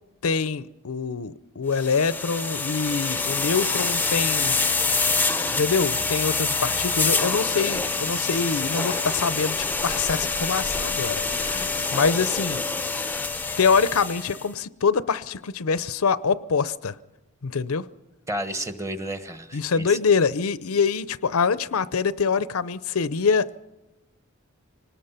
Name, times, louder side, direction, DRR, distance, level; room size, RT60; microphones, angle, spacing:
voice 1, 0.2-4.6 5.5-12.6 13.6-17.0 17.4-17.9 19.5-23.5, left 5 dB, 80° left, 0.6 m, -25 dB
sound 1, 1.7-14.5, left 4 dB, 10° left, 0.6 m, -26 dB
voice 2, 18.3-20.0, right 1 dB, 15° right, 1.3 m, -32 dB
25.0 x 19.5 x 5.7 m
head